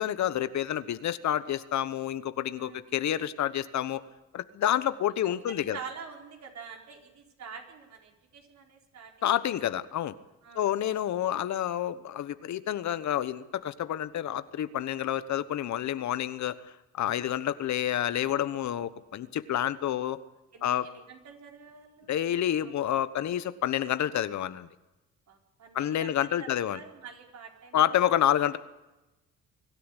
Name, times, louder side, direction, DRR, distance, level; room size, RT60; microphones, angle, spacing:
voice 1, 0.0-4.0 4.3-5.8 9.2-10.1 10.5-16.5 16.9-20.2 20.6-20.9 22.1-24.7 25.7-26.8 27.7-28.6, left 11 dB, 65° left, 14 dB, 1.2 m, -29 dB
voice 2, 2.5-2.9 5.2-9.3 10.4-10.7 17.1-17.4 20.5-22.1 25.3-26.1 26.4-28.0, right 6 dB, 65° right, 2 dB, 4.5 m, -46 dB
23.5 x 12.5 x 9.9 m, 1.0 s
cardioid pair, 90°, 30 cm